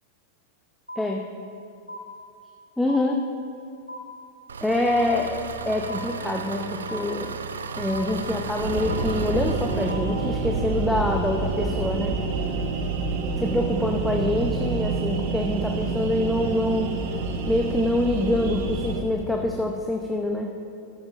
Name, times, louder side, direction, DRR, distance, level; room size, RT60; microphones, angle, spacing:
sound 1, 0.9-1.6 1.9-2.6 2.9-3.6 3.9-4.6 4.9-5.6 5.9-6.6 6.9-7.6 7.9-8.6 8.9-9.6 9.9-10.6, equal, 85° left, 0.8 m, -41 dB
voice 1, 2.8-3.2 4.6-7.3 7.7-12.2 13.4-16.9 17.5-20.5, left 1 dB, 5° left, 1 dB, 0.7 m, -25 dB
Engine, 4.5-9.9, right 5 dB, 70° right, 0.5 m, -35 dB
sound 2, 8.6-19.0, right 4 dB, 50° right, 1.1 m, -28 dB
13.5 x 12.5 x 2.5 m, 2.7 s
figure-of-eight pair, 90°, 0 cm